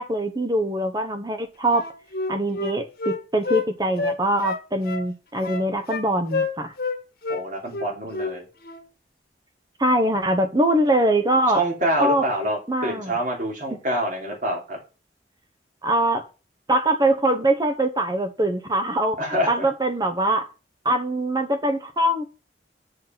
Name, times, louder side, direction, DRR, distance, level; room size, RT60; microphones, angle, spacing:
voice 1, 0.0-1.9 2.3-6.7 9.8-11.6 12.0-12.2 12.7-13.1 15.8-16.2 16.7-19.2 19.5-20.5 20.8-22.2, right 1 dB, 20° right, 8 dB, 1.1 m, -22 dB
Wind instrument woodwind instrument, 1.7-3.7 4.0-5.1 5.4-6.1 6.3-7.0 7.2-7.4 7.7-8.3 8.6-8.8, left 3 dB, 55° left, 1.5 m, -28 dB
voice 2, 7.3-8.5 11.5-14.8 19.2-19.7, right 1 dB, 45° right, 1 dB, 3.3 m, -26 dB
7.4 x 6.4 x 5.9 m, 0.33 s
head